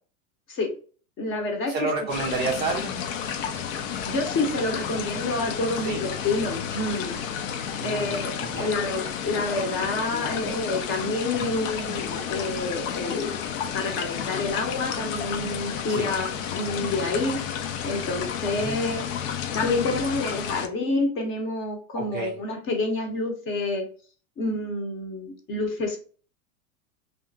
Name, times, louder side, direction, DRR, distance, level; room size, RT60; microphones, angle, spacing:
voice 1, 1.2-1.7 4.1-7.2 7.8-13.4 13.7-17.4 17.8-19.1 19.5-23.9 24.4-26.0, left 2 dB, 30° left, 4 dB, 0.7 m, -28 dB
voice 2, 1.7-3.0 5.9-6.0 7.8-8.2 8.4-8.7 11.4-11.5 15.9-16.1 18.6-18.8 21.9-22.3, right 4 dB, 25° right, 0 dB, 0.4 m, -30 dB
sound 1, 2.1-20.7, left 8 dB, 65° left, 0.6 m, -31 dB
2.7 x 2.5 x 2.6 m, 0.40 s
hypercardioid pair, 110°, 42 cm